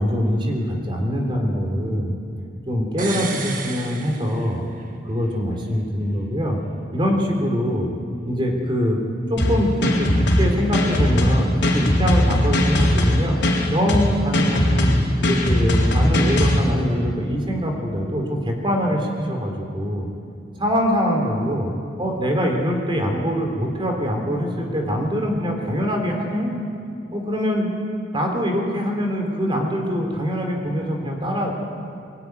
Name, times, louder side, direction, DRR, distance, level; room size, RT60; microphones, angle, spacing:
voice 1, 0.0-2.1 2.7-4.6 5.1-6.6 6.9-7.9 8.3-9.0 9.3-13.4 13.7-20.1 20.6-21.7 22.0-26.5 27.1-27.7 28.1-31.5, equal, 30° right, 2 dB, 3.7 m, -23 dB
sound 1, 3.0-4.9 5.2-5.3, right 5 dB, 50° right, 2.0 m, -33 dB
sound 2, 9.4-16.6, left 1 dB, 75° left, 4.0 m, -19 dB
22.0 x 18.5 x 9.7 m, 2.5 s
head